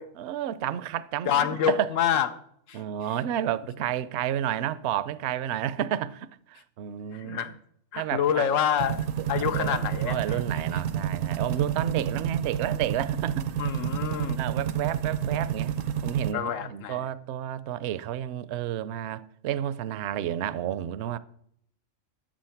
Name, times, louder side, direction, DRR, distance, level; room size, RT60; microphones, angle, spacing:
voice 1, 0.2-1.9 2.7-7.5 8.0-8.5 9.4-13.5 14.4-15.7 16.0-21.2, right 11 dB, 70° right, 0.8 m, -31 dB
voice 2, 1.3-2.3 2.7-2.8 7.1-7.6 7.9-10.4 13.6-14.4 16.3-17.0, left 9 dB, 85° left, 1.1 m, -27 dB
sound 1, 8.8-16.3, right 9 dB, 85° right, 1.1 m, -29 dB
9.0 x 7.4 x 5.8 m
omnidirectional pair, 1.3 m